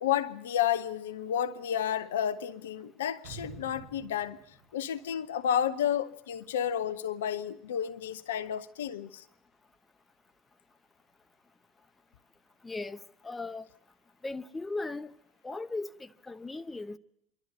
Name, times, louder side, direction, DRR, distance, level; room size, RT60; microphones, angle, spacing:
voice 1, 0.0-4.4 4.7-9.2, left 9 dB, 75° left, 0.7 m, -31 dB
sound 1, 3.2-6.1 6.4-6.5, right 4 dB, 65° right, 6.1 m, -49 dB
voice 2, 12.6-13.7 14.2-15.1 15.4-17.0, left 3 dB, 15° left, 0.9 m, -38 dB
26.0 x 12.0 x 8.5 m
hypercardioid pair, 75°, 0 cm